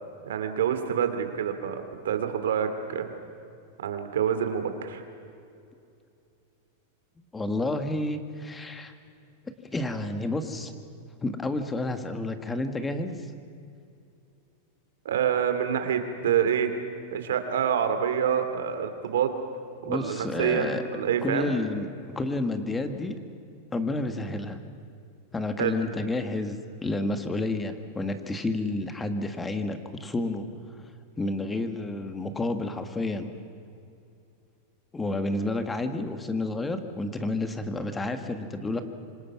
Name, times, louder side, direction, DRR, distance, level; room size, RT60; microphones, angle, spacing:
voice 1, 0.2-3.1 3.8-5.0 15.0-16.7 17.1-19.3 19.8-21.5 25.6-25.8, right 8 dB, 85° right, 8 dB, 2.6 m, -27 dB
voice 2, 7.3-8.9 9.6-10.7 11.2-13.2 19.8-20.8 21.2-23.2 23.7-24.6 25.3-30.4 31.2-33.3 34.9-38.8, left 2 dB, 10° left, 7 dB, 1.7 m, -30 dB
26.0 x 26.0 x 6.0 m, 2.5 s
supercardioid pair, 135°, 0 cm